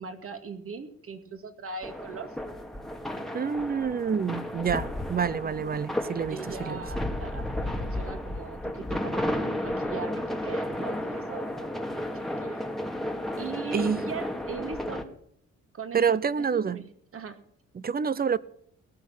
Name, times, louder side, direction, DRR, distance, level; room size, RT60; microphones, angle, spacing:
voice 1, 0.0-2.4 5.4-5.8 6.3-9.3 9.6-11.7 12.4-12.7 13.4-15.1 15.7-16.8 17.1-17.4, right 5 dB, 45° right, 2.2 m, -40 dB
sound 1, 1.8-15.0, left 1 dB, ahead, 1.8 m, -33 dB
voice 2, 3.3-6.8 13.7-14.1 15.9-16.8 17.7-18.4, right 6 dB, 30° right, 0.8 m, -27 dB
18.0 x 6.4 x 8.7 m
cardioid pair, 90°, 30 cm